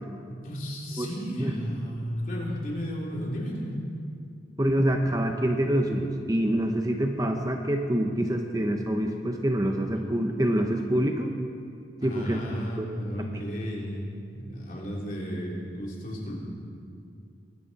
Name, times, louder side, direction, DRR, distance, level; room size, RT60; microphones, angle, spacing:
voice 1, 0.3-3.8 12.0-16.4, equal, 45° left, -3 dB, 3.1 m, -34 dB
voice 2, 4.6-11.3 12.0-12.4 12.8-12.9 13.2-13.3, right 1 dB, 20° right, 4 dB, 0.7 m, -26 dB
22.5 x 12.0 x 4.2 m, 2.4 s
head